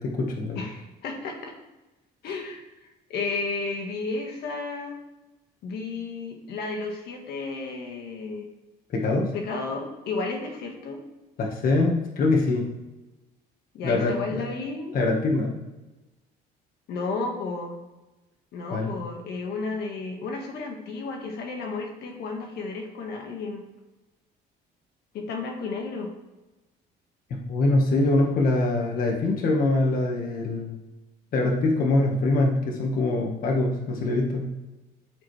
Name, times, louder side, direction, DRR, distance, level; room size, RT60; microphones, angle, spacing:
voice 1, 0.0-0.6 2.2-2.3 8.9-9.3 11.4-12.7 13.8-14.4 14.9-15.6 18.7-18.9 27.3-30.8 31.3-34.5, left 2 dB, 55° left, 0 dB, 1.5 m, -24 dB
voice 2, 0.5-1.5 2.2-4.9 5.6-8.4 9.3-11.0 13.7-14.9 16.9-17.8 18.5-23.6 25.1-26.1, left 3 dB, 75° left, 2 dB, 1.7 m, -33 dB
13.5 x 4.6 x 3.3 m, 1.1 s
cardioid pair, 110°, 17 cm